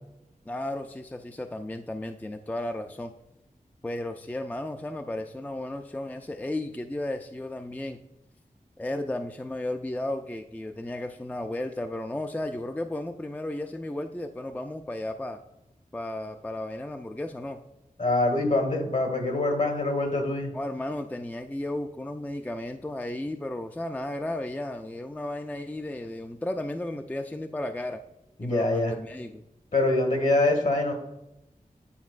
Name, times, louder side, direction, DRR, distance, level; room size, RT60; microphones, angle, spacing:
voice 1, 0.5-3.1 3.8-8.0 8.8-15.4 15.9-17.6 20.5-28.0 28.4-29.4, left 1 dB, 10° left, 6 dB, 0.3 m, -34 dB
voice 2, 18.0-20.5 28.4-28.9 29.7-30.9, left 2 dB, 60° left, 3 dB, 1.5 m, -24 dB
9.4 x 4.4 x 2.4 m, 0.90 s
wide cardioid pair, 75°, 14 cm